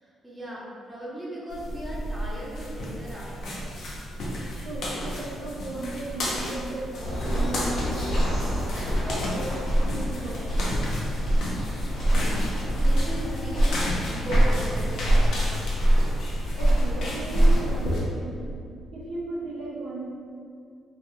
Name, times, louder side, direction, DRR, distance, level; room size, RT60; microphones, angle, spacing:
voice 1, 0.0-3.9 12.6-15.6, equal, 10° right, -7 dB, 0.8 m, -38 dB
sound 1, 1.5-18.0, equal, 70° left, 0.5 m, -33 dB
voice 2, 4.6-8.5 8.9-10.9 16.6-18.6 18.9-20.1, right 2 dB, 80° right, -4 dB, 0.4 m, -36 dB
sound 2, 7.0-17.9, right 1 dB, 90° left, 1.1 m, -24 dB
2.3 x 2.2 x 2.8 m, 2.3 s
cardioid pair, 90°, 0 cm